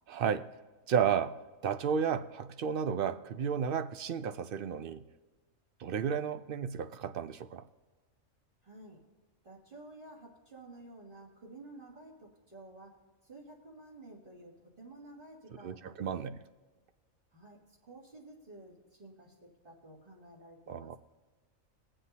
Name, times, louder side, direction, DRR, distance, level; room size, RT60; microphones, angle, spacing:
voice 1, 0.1-0.5 0.9-5.0 5.8-7.7 15.6-16.4 20.7-21.0, right 7 dB, 60° right, 11 dB, 0.6 m, -32 dB
voice 2, 8.6-9.0 9.4-13.0 13.2-16.3 17.3-21.0, right 2 dB, 45° right, -4 dB, 2.6 m, -52 dB
22.0 x 7.7 x 2.8 m, 1.3 s
omnidirectional pair, 1.3 m